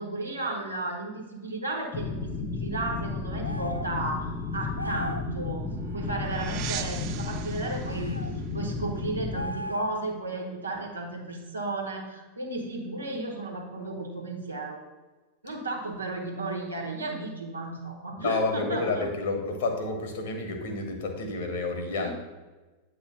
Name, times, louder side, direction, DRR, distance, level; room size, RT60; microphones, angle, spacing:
voice 1, 0.0-5.7 5.9-8.3 8.5-14.8 15.4-19.1 22.0-22.1, right 2 dB, 80° right, 0 dB, 1.3 m, -34 dB
sound 1, 1.9-9.5, left 4 dB, 20° left, 0.7 m, -33 dB
sound 2, 3.4-4.0 4.8-5.3 7.8-8.3 9.3-10.1, equal, 90° left, 0.3 m, -36 dB
sound 3, 5.2-10.1, right 10 dB, 40° right, 0.4 m, -41 dB
voice 2, 18.2-22.1, left 3 dB, 55° left, 4 dB, 1.3 m, -30 dB
8.5 x 3.2 x 5.7 m, 1.2 s
figure-of-eight pair, 90°, 0 cm